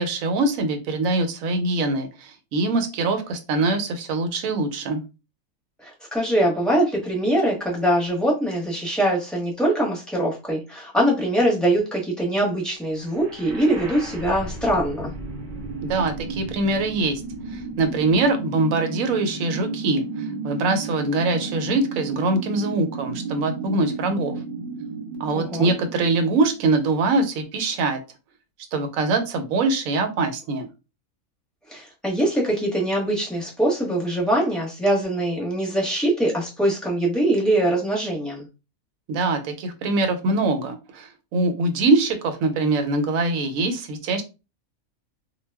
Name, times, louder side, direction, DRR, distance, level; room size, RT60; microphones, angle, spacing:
voice 1, 0.0-5.0 15.8-17.2 17.5-24.3 25.2-28.0 28.7-30.7 39.1-44.2, right 3 dB, 80° right, 7 dB, 1.0 m, -23 dB
voice 2, 5.8-15.1 25.3-25.7 31.7-38.5, right 1 dB, ahead, -3 dB, 0.8 m, -23 dB
sound 1, 13.1-27.0, right 3 dB, 50° right, 0.6 m, -33 dB
2.2 x 2.2 x 3.3 m, 0.29 s
omnidirectional pair, 1.4 m